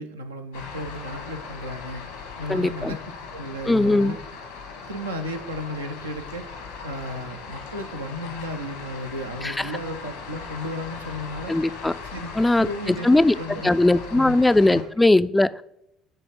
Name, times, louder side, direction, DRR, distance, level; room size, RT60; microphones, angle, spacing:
voice 1, 0.0-2.0 2.4-4.2 4.8-6.4 6.8-11.5 12.0-13.8 14.1-14.4 14.7-14.9, left 1 dB, 90° right, 0.6 m, -34 dB
sound 1, 0.5-14.8, left 4 dB, 80° left, 1.3 m, -39 dB
voice 2, 2.5-3.0 3.7-4.2 9.4-9.7 11.5-11.9 12.4-13.3 13.6-15.6, left 2 dB, 10° left, 0.3 m, -19 dB
8.7 x 3.2 x 5.1 m
hypercardioid pair, 60°, 0 cm